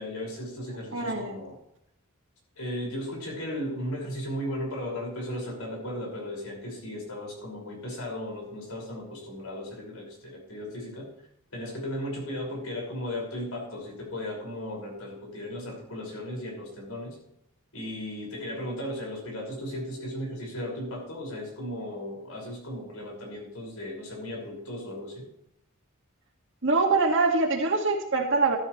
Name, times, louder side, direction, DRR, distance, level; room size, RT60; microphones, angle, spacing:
voice 1, 0.0-1.5 2.6-11.1 11.5-17.2 17.7-25.3, left 1 dB, 85° left, -1 dB, 5.7 m, -36 dB
voice 2, 0.9-1.3 26.6-28.6, right 3 dB, 55° right, 1 dB, 2.0 m, -24 dB
15.0 x 12.5 x 3.2 m, 0.76 s
head